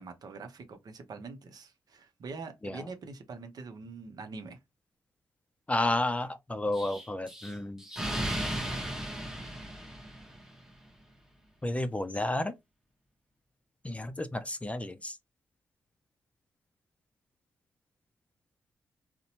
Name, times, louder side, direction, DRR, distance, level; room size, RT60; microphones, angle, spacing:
voice 1, 0.0-4.6, right 4 dB, 60° right, 0.7 m, -44 dB
voice 2, 5.7-7.8 11.6-12.5 13.8-15.1, left 1 dB, 15° left, 0.4 m, -31 dB
Explosion, 6.7-10.6, right 1 dB, 5° right, 0.9 m, -36 dB
2.6 x 2.1 x 2.8 m
supercardioid pair, 50°, 8 cm